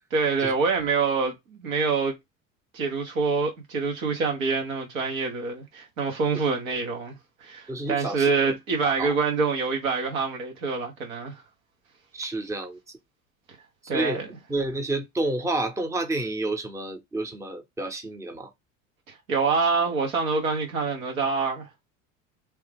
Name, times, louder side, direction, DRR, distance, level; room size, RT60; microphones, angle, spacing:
voice 1, 0.1-2.2 2.7-11.4 13.9-14.3 19.1-21.7, right 4 dB, 85° right, 1.2 m, -26 dB
voice 2, 7.7-8.3 8.8-9.1 12.1-12.8 13.9-14.2 14.5-18.5, right 2 dB, 10° right, 0.7 m, -29 dB
3.1 x 2.4 x 3.4 m
hypercardioid pair, 75°, 40 cm